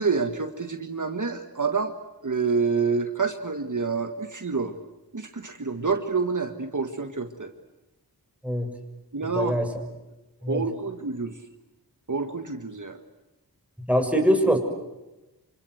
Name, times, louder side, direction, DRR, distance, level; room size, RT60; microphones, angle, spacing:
voice 1, 0.0-1.9 2.2-4.7 5.1-7.5 9.1-9.5 10.5-11.3 12.1-13.0, right 4 dB, 50° right, 6 dB, 1.7 m, -27 dB
voice 2, 9.2-9.7 10.4-10.6 13.9-14.6, equal, 5° right, 4 dB, 6.3 m, -23 dB
28.5 x 26.0 x 8.0 m, 1.0 s
wide cardioid pair, 55°, 38 cm